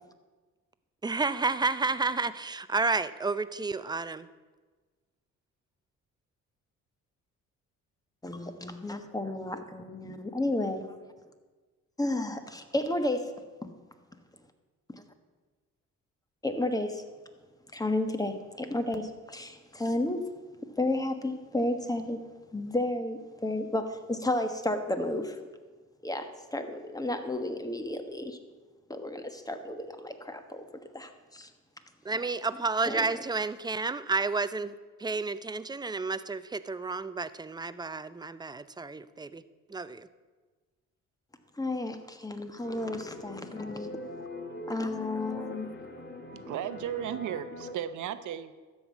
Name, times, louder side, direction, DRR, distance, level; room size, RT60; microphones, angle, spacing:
voice 1, 1.0-4.3 32.0-39.4 39.7-40.1, right 3 dB, 15° right, 14 dB, 0.5 m, -31 dB
voice 2, 8.2-10.8 12.0-13.4 13.6-13.7 14.9-15.0 16.4-17.0 17.7-20.3 20.8-22.2 22.5-25.4 26.0-28.4 28.9-30.6 30.9-31.5 32.9-33.1 41.6-43.9 44.7-45.7, left 1 dB, 10° left, 8 dB, 1.2 m, -32 dB
sound 1, 42.6-47.7, left 2 dB, 40° left, 2.0 m, -42 dB
voice 3, 46.3-48.5, right 10 dB, 75° right, 12 dB, 0.8 m, -35 dB
13.0 x 5.5 x 8.3 m, 1.3 s
cardioid pair, 90°, 30 cm